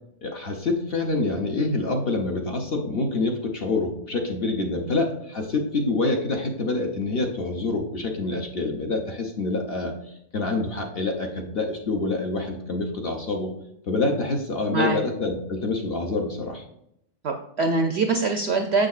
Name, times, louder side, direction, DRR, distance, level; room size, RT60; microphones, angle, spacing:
voice 1, 0.2-9.9 10.3-13.5 13.9-16.6, left 3 dB, 50° left, 2 dB, 0.8 m, -26 dB
voice 2, 17.2-18.9, right 3 dB, 70° right, 5 dB, 0.6 m, -23 dB
6.4 x 6.3 x 2.4 m, 0.74 s
omnidirectional pair, 1.6 m